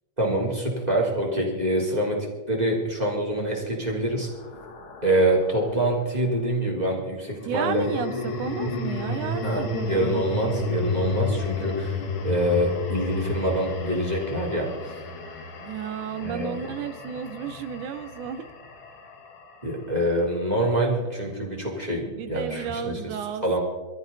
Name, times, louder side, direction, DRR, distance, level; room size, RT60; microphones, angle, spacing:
voice 1, 0.2-2.2 2.5-4.3 5.0-7.8 9.4-14.7 16.2-16.5 19.6-23.1 23.4-23.6, right 1 dB, 10° right, -3 dB, 3.7 m, -25 dB
sound 1, 3.3-5.8 7.4-19.7, left 3 dB, 50° left, 1.9 m, -32 dB
voice 2, 7.4-10.0 15.6-18.5 22.0-23.6, right 8 dB, 80° right, 10 dB, 2.3 m, -33 dB
23.0 x 14.0 x 4.1 m, 1.3 s
omnidirectional pair, 3.5 m